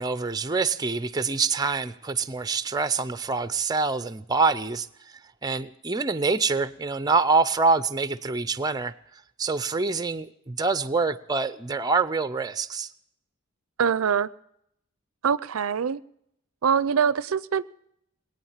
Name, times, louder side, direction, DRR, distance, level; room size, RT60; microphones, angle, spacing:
voice 1, 0.0-4.9 5.4-8.9 9.4-12.9, right 4 dB, 20° right, 13 dB, 0.5 m, -25 dB
voice 2, 13.8-14.3 15.2-16.0 16.6-17.6, right 7 dB, 80° right, 19 dB, 0.5 m, -23 dB
20.5 x 9.0 x 7.3 m, 0.76 s
head